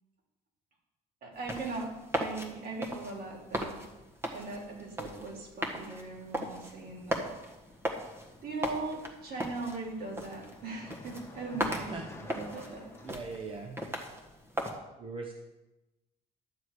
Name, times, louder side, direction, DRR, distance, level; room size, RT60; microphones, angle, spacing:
voice 1, 1.2-3.8 4.3-7.3 8.4-12.9, right 3 dB, 60° right, -2 dB, 3.3 m, -39 dB
sound 1, 1.3-14.7, right 1 dB, 15° right, 1.6 m, -38 dB
Car passing by, 6.1-13.1, left 2 dB, 15° left, 1.7 m, -52 dB
voice 2, 11.5-12.1 12.5-12.8 13.0-13.8 15.0-15.3, right 3 dB, 30° right, 3 dB, 0.9 m, -41 dB
12.0 x 7.1 x 4.8 m, 1.0 s
cardioid pair, 110°, 17 cm